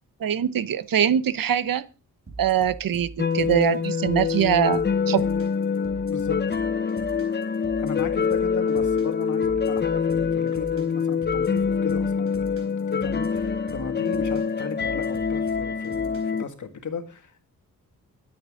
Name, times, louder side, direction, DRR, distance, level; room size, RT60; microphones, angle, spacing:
voice 1, 0.2-1.9 2.4-5.3, right 9 dB, 75° right, 0.9 m, -23 dB
sound 1, 2.3-16.5, right 3 dB, 40° right, 4.3 m, -42 dB
sound 2, 3.2-16.4, left 6 dB, 30° left, 0.7 m, -25 dB
voice 2, 6.1-6.5 7.8-17.5, left 5 dB, 60° left, 2.1 m, -35 dB
22.0 x 8.7 x 3.8 m
wide cardioid pair, 160°, 34 cm